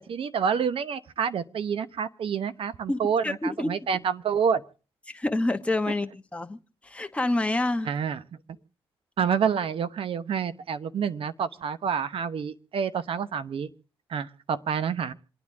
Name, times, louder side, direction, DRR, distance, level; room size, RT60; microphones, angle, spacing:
voice 1, 0.0-4.6 7.9-8.2 9.2-13.7 14.1-15.1, right 7 dB, 60° right, 13 dB, 0.9 m, -28 dB
voice 2, 2.9-3.7 5.1-6.6 6.8-7.9, left 2 dB, 10° left, 6 dB, 1.1 m, -27 dB
27.5 x 9.7 x 3.6 m, 0.37 s
cardioid pair, 70°, 10 cm